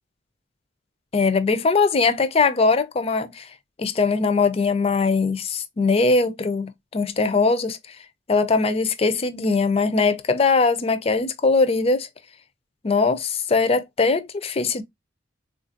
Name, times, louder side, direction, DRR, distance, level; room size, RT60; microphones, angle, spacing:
voice 1, 1.1-3.5 3.8-7.8 8.3-12.1 12.8-14.8, left 4 dB, 30° left, 0.4 m, -21 dB
3.9 x 2.4 x 2.5 m
head